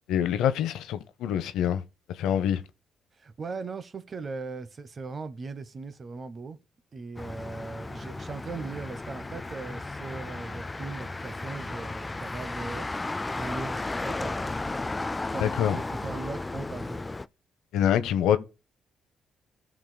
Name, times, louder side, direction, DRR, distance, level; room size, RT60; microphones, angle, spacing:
voice 1, 0.1-1.8 2.2-2.6 15.4-15.8 17.7-18.4, left 9 dB, 90° left, 0.7 m, -25 dB
voice 2, 3.2-6.6 6.9-12.9 13.4-14.5 15.3-17.0, right 4 dB, 40° right, 0.9 m, -39 dB
Motor vehicle (road), 7.2-17.3, left 2 dB, 20° left, 0.3 m, -34 dB
15.0 x 6.1 x 2.2 m
cardioid pair, 90°, 0 cm